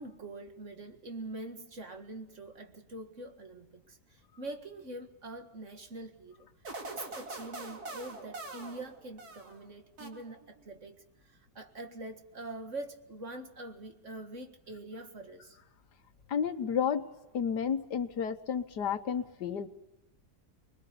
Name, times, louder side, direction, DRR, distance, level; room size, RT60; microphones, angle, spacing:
voice 1, 0.0-6.5 6.9-11.0 11.2-15.6, right 2 dB, 45° right, 6 dB, 2.1 m, -44 dB
sound 1, 6.6-9.6 10.0-10.6, right 2 dB, 65° right, 2.8 m, -43 dB
voice 2, 16.3-17.1 17.3-19.7, left 7 dB, 80° left, 10 dB, 1.8 m, -31 dB
25.0 x 21.5 x 6.9 m, 0.97 s
omnidirectional pair, 1.8 m